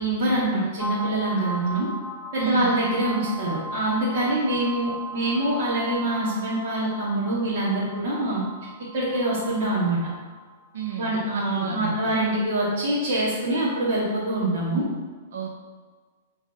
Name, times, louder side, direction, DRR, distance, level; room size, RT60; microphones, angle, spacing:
voice 1, 0.0-1.9 2.3-8.4 8.9-10.0 11.0-14.8, right 1 dB, 50° right, -8 dB, 2.3 m, -25 dB
sound 1, 0.8-11.0, right 1 dB, 5° right, 0.6 m, -37 dB
voice 2, 2.4-2.9 4.2-4.3 10.7-12.2 15.3-15.5, right 6 dB, 75° right, 0 dB, 1.0 m, -32 dB
8.6 x 4.1 x 5.1 m, 1.5 s
hypercardioid pair, 160°, 0 cm